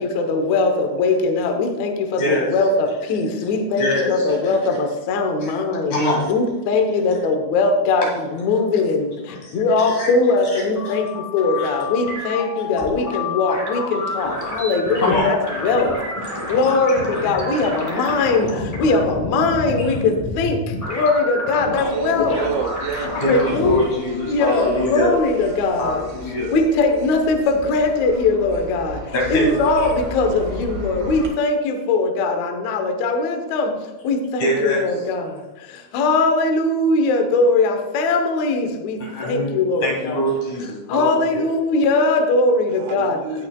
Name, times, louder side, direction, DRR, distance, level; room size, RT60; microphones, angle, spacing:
voice 1, 0.0-5.9 6.3-22.4 23.3-26.0 26.5-33.8 34.0-40.2 40.9-43.2, left 3 dB, 75° left, 5 dB, 1.6 m, -20 dB
voice 2, 2.2-2.5 3.8-4.5 5.4-5.6 5.9-6.3 9.3-9.5 9.9-10.1 10.5-10.9 11.5-11.7 15.0-15.3 22.3-22.4 23.2-25.1 25.8-26.5 29.1-29.5 34.4-34.8 39.0-39.5 39.8-41.4, equal, 55° left, -3 dB, 3.2 m, -24 dB
sound 1, 10.6-23.8, left 2 dB, 15° left, 1.3 m, -29 dB
sound 2, 21.7-31.3, equal, 55° right, 1.1 m, -36 dB
voice 3, 21.9-23.6 42.8-43.5, right 5 dB, 75° right, 5 dB, 2.7 m, -28 dB
18.0 x 6.2 x 2.3 m, 1.1 s
omnidirectional pair, 4.5 m